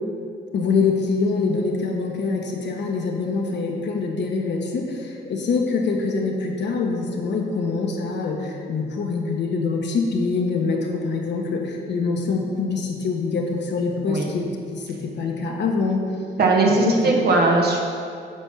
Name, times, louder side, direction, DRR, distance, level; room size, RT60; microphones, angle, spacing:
voice 1, 0.5-14.4 14.7-16.0 16.8-17.2, left 4 dB, 60° left, 1 dB, 1.3 m, -24 dB
voice 2, 16.4-17.8, right 3 dB, 55° right, -1 dB, 1.6 m, -19 dB
9.0 x 4.4 x 6.2 m, 2.3 s
cardioid pair, 90°, 20 cm